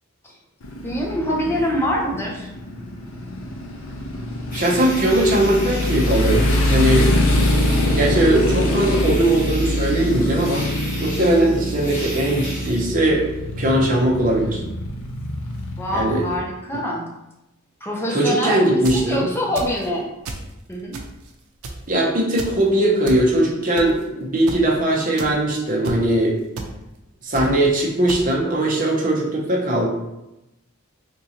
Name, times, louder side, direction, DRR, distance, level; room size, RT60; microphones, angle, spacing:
Motorcycle, 0.6-16.4, left 1 dB, 70° left, 0.6 m, -24 dB
voice 1, 0.8-2.5 15.8-17.1 17.8-20.1 20.7-21.0, equal, 10° left, -2 dB, 0.6 m, -25 dB
sound 1, 4.5-12.9, equal, 40° left, 0.9 m, -35 dB
voice 2, 4.5-6.4 6.7-7.1 7.9-10.7 11.0-13.2 13.6-14.6 15.9-16.3 16.7-16.8 18.1-19.3 21.9-26.3 27.2-29.9, right 1 dB, 40° right, -2 dB, 0.7 m, -19 dB
sound 2, 18.7-19.1 19.6-19.9 20.3-20.5 20.9-21.3 21.6-21.9 22.4-22.6 23.1-23.2 23.8-24.0 24.5-24.6 25.2-25.3 25.8-26.0 26.6-26.7 27.3-27.5 28.1-28.2, right 3 dB, 90° right, 0.5 m, -30 dB
3.6 x 2.8 x 2.9 m, 0.93 s
head